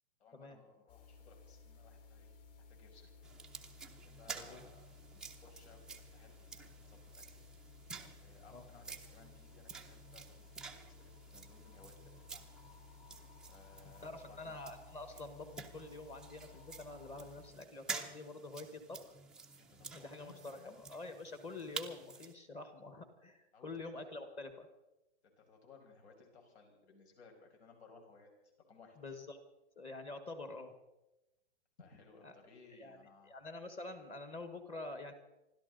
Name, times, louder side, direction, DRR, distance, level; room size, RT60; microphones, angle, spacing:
voice 1, 0.2-2.4 2.7-3.1 4.0-4.9 5.4-6.5 6.8-7.4 8.2-12.5 13.5-14.6 19.6-20.8 23.5-23.7 25.4-28.3 28.7-29.0 31.8-33.4, left 4 dB, 75° left, 2 dB, 5.6 m, -61 dB
sound 1, 0.9-17.5, left 4 dB, 55° left, 5.5 m, -58 dB
sound 2, 3.2-22.3, right 4 dB, ahead, 0.6 m, -50 dB
voice 2, 14.0-19.1 19.9-24.7 29.0-29.4 29.8-30.7 32.2-32.3 32.8-33.0 33.2-35.1, left 2 dB, 20° left, 9 dB, 1.3 m, -47 dB
27.5 x 12.5 x 3.9 m, 0.96 s
hypercardioid pair, 155°, 33 cm